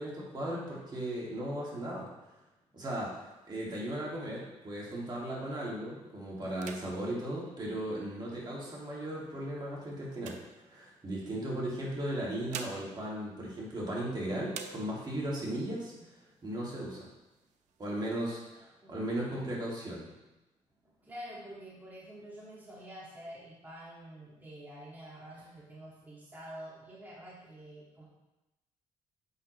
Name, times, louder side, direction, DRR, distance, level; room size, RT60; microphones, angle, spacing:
voice 1, 0.0-2.1 2.7-10.4 10.6-15.9 16.4-17.1 17.8-18.4 18.9-20.0, right 1 dB, 35° right, -5 dB, 2.4 m, -36 dB
sound 1, 3.3-5.4 5.9-6.1 6.5-8.4 9.1-11.2 12.1-14.1 14.5-15.3 15.8-15.9 16.2-16.8 17.3-18.2, right 6 dB, 80° right, 0.6 m, -49 dB
voice 2, 18.0-18.4 18.8-19.0 20.8-28.0, equal, 15° right, -7 dB, 2.1 m, -48 dB
8.0 x 5.9 x 3.2 m, 0.99 s
cardioid pair, 85°, 12 cm